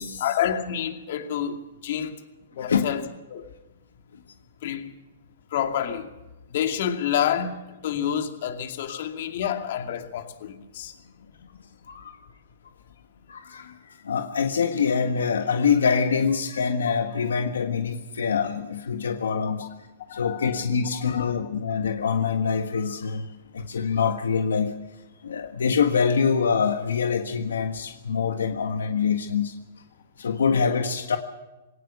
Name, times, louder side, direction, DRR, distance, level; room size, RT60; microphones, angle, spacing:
voice 1, 0.2-2.2 2.5-3.0 3.3-3.4 4.6-4.9 5.5-6.1 6.5-10.9 19.5-19.7 20.1-20.6 20.9-21.4, left 9 dB, 60° left, 2.4 m, -28 dB
voice 2, 13.3-19.7 20.1-24.7 25.2-29.5 30.2-31.2, left 6 dB, 90° left, 1.5 m, -25 dB
21.0 x 18.0 x 6.8 m
hypercardioid pair, 140°, 0 cm